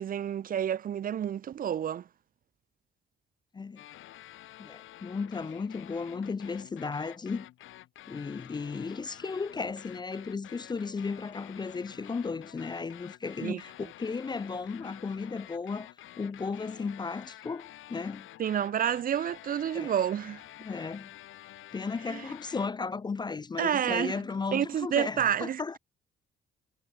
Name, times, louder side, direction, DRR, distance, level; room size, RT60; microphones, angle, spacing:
voice 1, 0.0-2.0 13.4-13.6 18.4-20.4 22.1-22.2 23.6-24.2 24.5-25.6, right 9 dB, 45° right, 0.5 m, -29 dB
sound 1, 3.8-22.7, left 14 dB, 80° left, 2.6 m, -50 dB
voice 2, 4.6-7.5 8.1-18.3 19.7-19.9 20.6-21.1 21.7-25.8, left 4 dB, 20° left, 0.4 m, -35 dB
cardioid pair, 90°, 20 cm